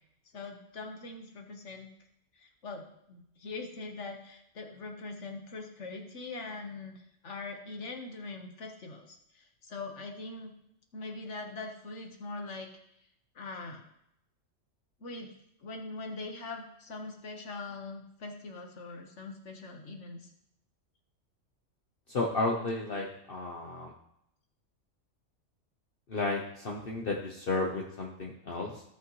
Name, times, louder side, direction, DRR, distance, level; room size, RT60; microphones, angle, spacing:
voice 1, 0.3-1.9 2.4-10.5 10.9-12.7 13.3-13.8 15.0-15.3 15.6-20.3, left 3 dB, 65° left, 3 dB, 1.6 m, -42 dB
voice 2, 22.1-23.9 26.1-28.8, left 2 dB, 50° left, -1 dB, 1.1 m, -33 dB
15.5 x 5.7 x 3.1 m, 0.76 s
omnidirectional pair, 1.3 m